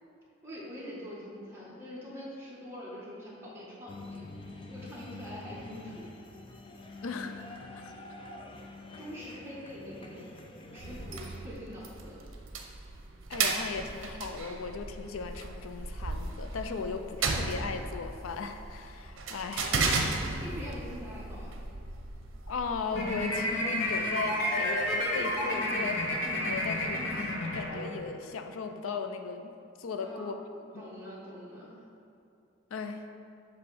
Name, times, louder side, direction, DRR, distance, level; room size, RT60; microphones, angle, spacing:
voice 1, 0.4-4.3 4.7-6.0 7.7-7.8 9.0-10.3 10.6-12.2 19.5-21.5 30.0-30.3 30.7-31.8, equal, 10° right, -7 dB, 1.5 m, -44 dB
sound 1, 3.9-11.4, left 2 dB, 25° left, 0.4 m, -46 dB
voice 2, 7.0-7.4 8.0-8.1 13.3-19.8 22.5-29.5 29.8-30.4 30.7-30.8 32.7-33.0, left 4 dB, 85° left, 7 dB, 0.4 m, -37 dB
sound 2, 10.8-23.2, right 3 dB, 70° right, 0.7 m, -35 dB
sound 3, 22.9-28.2, left 1 dB, 70° left, 1.2 m, -31 dB
7.5 x 3.1 x 6.2 m, 2.7 s
head